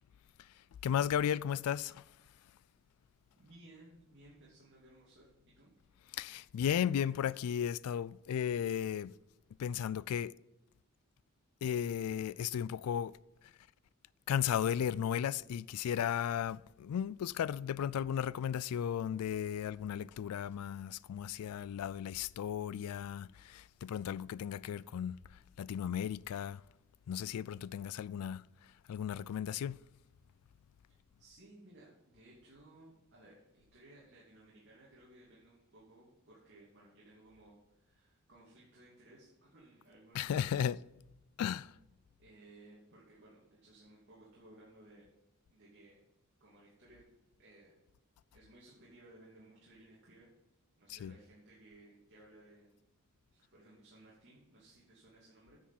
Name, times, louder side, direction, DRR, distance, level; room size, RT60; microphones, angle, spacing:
voice 1, 0.8-2.0 6.1-9.1 9.6-10.3 11.6-13.1 14.3-25.2 25.6-26.6 27.1-28.4 28.9-29.8 40.1-40.8 41.4-41.7 50.9-51.1, left 9 dB, 90° left, 0.3 m, -35 dB
voice 2, 3.4-5.7 31.2-40.7 42.2-45.1 45.5-46.0 46.4-47.0 47.4-47.8 48.3-50.3 50.8-52.8 53.3-55.6, right 1 dB, 55° right, 2.8 m, -59 dB
10.0 x 6.2 x 7.3 m
head